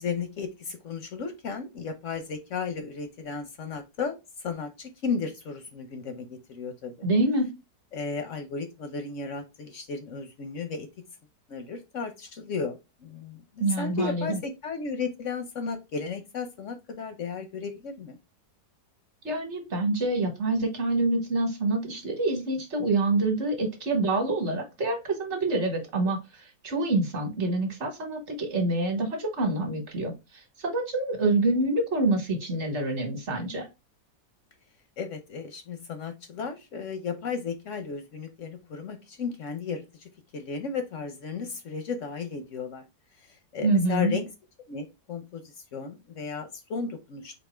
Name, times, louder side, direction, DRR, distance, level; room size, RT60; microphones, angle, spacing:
voice 1, 0.0-7.1 7.9-10.9 11.5-18.2 35.0-42.8 43.2-44.3 44.7-47.4, left 5 dB, 65° left, 7 dB, 0.8 m, -34 dB
voice 2, 7.0-7.5 13.6-14.4 19.2-26.2 26.6-30.1 30.6-33.7 43.6-44.2, right 2 dB, 45° right, 4 dB, 1.4 m, -26 dB
4.4 x 2.7 x 4.2 m, 0.25 s
omnidirectional pair, 1.9 m